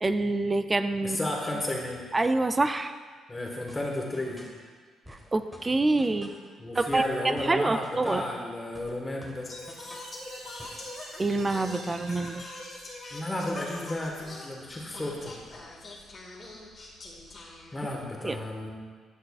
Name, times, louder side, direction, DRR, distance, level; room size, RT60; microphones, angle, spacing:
voice 1, 0.0-1.2 2.1-2.9 5.3-6.3 6.8-8.2 11.2-12.4 18.2-18.4, right 2 dB, 25° right, 10 dB, 0.4 m, -26 dB
voice 2, 1.0-2.0 3.3-4.4 6.6-9.5 13.1-15.4 17.7-18.7, left 1 dB, 20° left, -1 dB, 1.5 m, -33 dB
sound 1, 3.7-4.6 5.0-6.5 6.9-8.4 8.7-10.2 10.6-10.9, equal, 5° right, 1.2 m, -49 dB
Singing, 9.4-18.1, left 2 dB, 35° left, 1.8 m, -44 dB
Chime, 9.5-14.2, right 2 dB, 90° right, 1.3 m, -48 dB
10.5 x 6.6 x 2.4 m, 1.6 s
cardioid pair, 90°, 0 cm